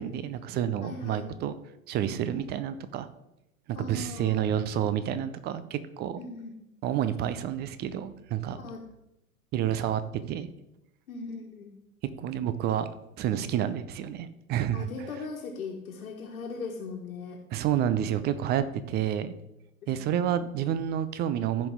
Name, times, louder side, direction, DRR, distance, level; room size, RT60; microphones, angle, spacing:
voice 1, 0.0-1.5 1.9-3.1 3.7-6.2 6.8-8.6 9.5-10.0 10.3-10.5 12.2-12.9 13.2-14.9 17.5-19.4 19.9-21.7, right 10 dB, 25° right, 13 dB, 0.6 m, -29 dB
voice 2, 0.8-1.3 3.7-4.4 6.2-6.5 8.6-8.8 11.1-11.7 14.7-17.4 19.8-20.0, left 4 dB, 65° left, -3 dB, 1.5 m, -39 dB
15.0 x 5.3 x 3.6 m, 0.90 s
figure-of-eight pair, 90°, 44 cm